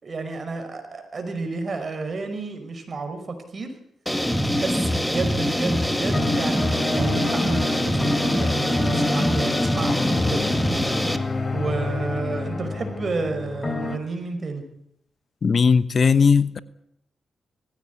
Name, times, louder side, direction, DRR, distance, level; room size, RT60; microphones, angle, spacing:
voice 1, 0.0-3.2 3.5-3.7 4.6-10.4 11.5-14.6, right 3 dB, 50° right, 5.5 m, -31 dB
sound 1, 4.1-11.2, equal, 5° left, 2.1 m, -23 dB
sound 2, 5.6-14.0, left 3 dB, 35° left, 3.5 m, -28 dB
voice 2, 15.4-16.6, left 5 dB, 55° left, 1.0 m, -18 dB
19.0 x 16.0 x 9.6 m
cardioid pair, 65°, 0 cm